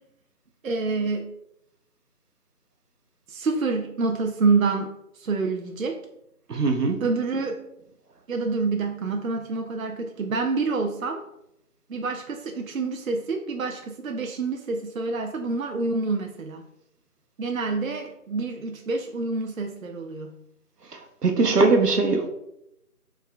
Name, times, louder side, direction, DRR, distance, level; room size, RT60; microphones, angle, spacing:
voice 1, 0.6-1.3 3.3-6.0 7.0-7.6 8.3-11.2 11.9-16.6 17.4-20.4, right 4 dB, 65° right, 3 dB, 0.5 m, -27 dB
voice 2, 6.5-7.0 21.2-22.3, right 3 dB, 90° right, 5 dB, 0.8 m, -20 dB
5.1 x 3.6 x 2.2 m, 0.81 s
figure-of-eight pair, 165°, 46 cm